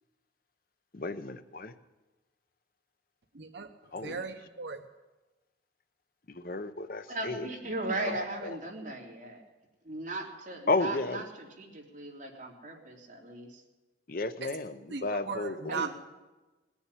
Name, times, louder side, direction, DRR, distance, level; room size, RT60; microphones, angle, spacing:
voice 1, 0.9-1.7 3.9-4.2 6.3-7.5 8.1-8.6 10.7-11.2 14.1-15.8, left 3 dB, 50° left, 10 dB, 0.7 m, -33 dB
voice 2, 3.3-3.7 4.0-4.8 14.4-14.5 14.9-15.9, right 5 dB, 70° right, 5 dB, 0.9 m, -37 dB
voice 3, 7.1-9.4 9.8-13.6 15.7-15.9, right 2 dB, 45° right, -2 dB, 3.3 m, -37 dB
19.5 x 7.1 x 9.9 m, 1.1 s
head